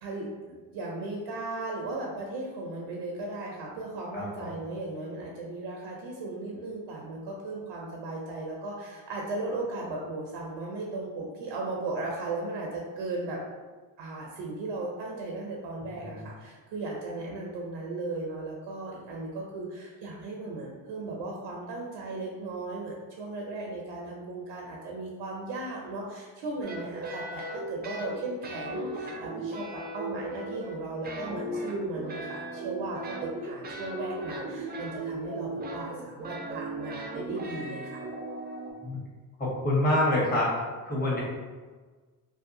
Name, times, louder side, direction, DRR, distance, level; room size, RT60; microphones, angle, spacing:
voice 1, 0.0-13.4 14.0-38.0, right 2 dB, 75° right, -2 dB, 0.6 m, -36 dB
voice 2, 4.1-4.6 16.1-16.2 38.8-39.0 39.4-40.5 40.8-41.2, left 1 dB, 20° left, -6 dB, 1.1 m, -26 dB
sound 1, 26.6-28.2 28.4-30.8 31.0-38.7, right 2 dB, 20° right, 0.5 m, -37 dB
2.7 x 2.3 x 2.6 m, 1.4 s
supercardioid pair, 70°, 47 cm